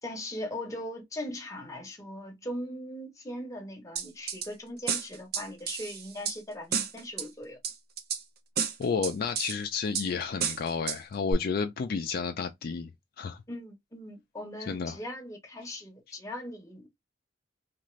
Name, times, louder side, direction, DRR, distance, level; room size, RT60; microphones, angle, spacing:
voice 1, 0.0-7.6 13.5-16.9, left 1 dB, 15° left, 0.8 m, -39 dB
sound 1, 4.0-4.5 4.9-6.4 6.7-7.3 7.6-8.2 8.6-9.6 9.9-10.1 10.4-11.0 11.3-11.4, right 7 dB, 55° right, 0.5 m, -31 dB
voice 2, 8.8-12.9 13.2-13.4 14.7-15.0, left 5 dB, 50° left, 0.3 m, -31 dB
2.5 x 2.4 x 3.1 m
head